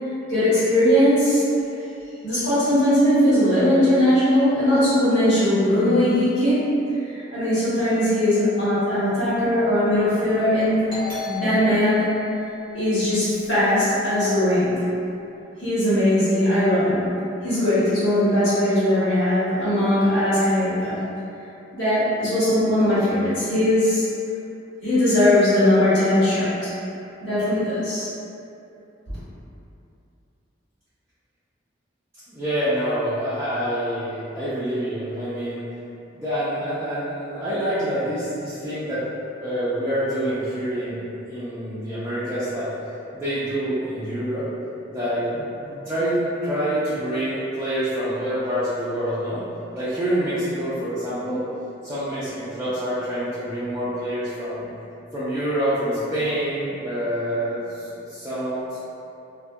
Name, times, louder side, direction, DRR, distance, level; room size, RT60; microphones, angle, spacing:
voice 1, 0.3-1.4 2.2-6.7 7.0-10.9 11.2-12.0 12.7-14.8 15.6-17.1 17.4-21.0 21.7-24.0 24.8-26.7 27.2-28.1, left 1 dB, 75° left, -13 dB, 1.2 m, -20 dB
Doorbell, 10.9-14.2, left 5 dB, 50° left, 1.0 m, -36 dB
voice 2, 32.3-35.6 36.1-39.0 39.4-42.7 43.1-44.5 44.9-49.4 49.7-51.4 51.8-54.7 55.1-58.8, equal, 15° right, -13 dB, 0.4 m, -26 dB
2.3 x 2.1 x 2.6 m, 2.8 s
head